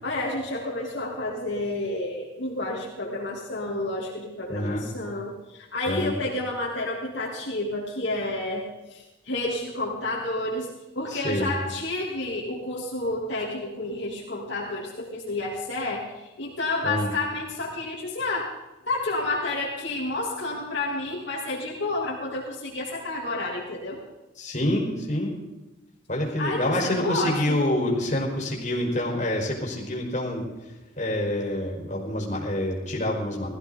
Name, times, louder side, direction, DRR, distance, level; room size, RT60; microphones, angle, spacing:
voice 1, 0.0-10.7 10.9-18.5 18.9-24.0 26.4-27.6, left 2 dB, 60° left, -5 dB, 3.1 m, -30 dB
voice 2, 4.5-4.8 5.9-6.2 11.1-11.5 16.8-17.1 24.4-25.3 26.1-33.5, left 1 dB, 40° left, -2 dB, 4.7 m, -27 dB
18.0 x 15.0 x 4.0 m, 1.1 s
head